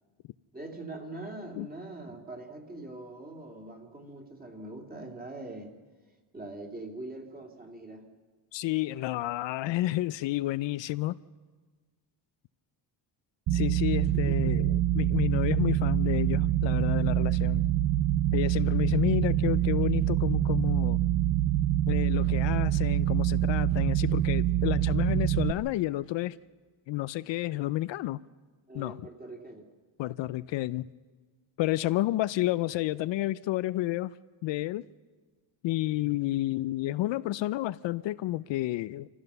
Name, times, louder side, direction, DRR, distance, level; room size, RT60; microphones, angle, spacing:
voice 1, 0.5-5.7 6.3-8.1 14.1-14.4 28.7-29.6, right 2 dB, 20° right, 2.5 m, -42 dB
voice 2, 8.5-11.2 13.5-17.6 18.3-21.0 21.9-26.4 26.9-28.2 28.7-29.0 30.0-30.9 31.6-34.1 34.4-34.9 35.6-39.1, left 16 dB, 70° left, 0.5 m, -30 dB
sound 1, 13.5-25.5, right 13 dB, 50° right, 0.7 m, -26 dB
25.5 x 15.0 x 6.8 m
cardioid pair, 130°, 46 cm